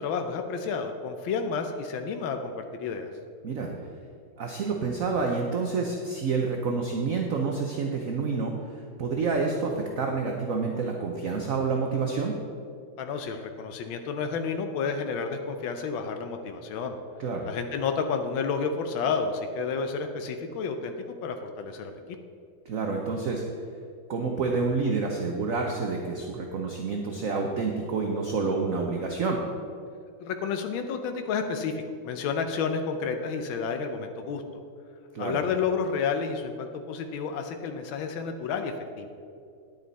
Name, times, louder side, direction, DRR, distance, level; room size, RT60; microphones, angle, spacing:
voice 1, 0.0-3.1 13.0-17.0 17.4-20.9 21.2-22.0 30.2-34.4 35.2-39.1, left 5 dB, 90° left, 6 dB, 1.5 m, -30 dB
voice 2, 4.4-12.3 17.2-17.5 22.6-23.4 24.1-29.4 35.1-35.4, right 4 dB, 55° right, 1 dB, 1.0 m, -28 dB
10.5 x 9.2 x 4.1 m, 2.4 s
omnidirectional pair, 2.1 m